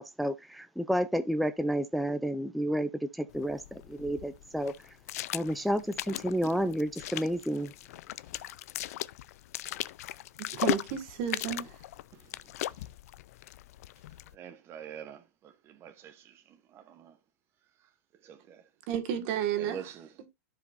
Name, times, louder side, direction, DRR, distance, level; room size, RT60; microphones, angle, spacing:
voice 1, 0.0-5.0 5.3-7.7, equal, ahead, 0.4 m, -31 dB
sound 1, 3.3-14.3, left 15 dB, 75° left, 0.5 m, -38 dB
voice 2, 10.4-11.8 18.9-19.9 20.2-20.3, right 10 dB, 50° right, 1.7 m, -32 dB
voice 3, 14.3-16.4 16.7-17.2 18.2-18.6 19.6-20.1, right 8 dB, 30° right, 0.8 m, -45 dB
14.0 x 4.9 x 2.5 m
supercardioid pair, 145°, 8 cm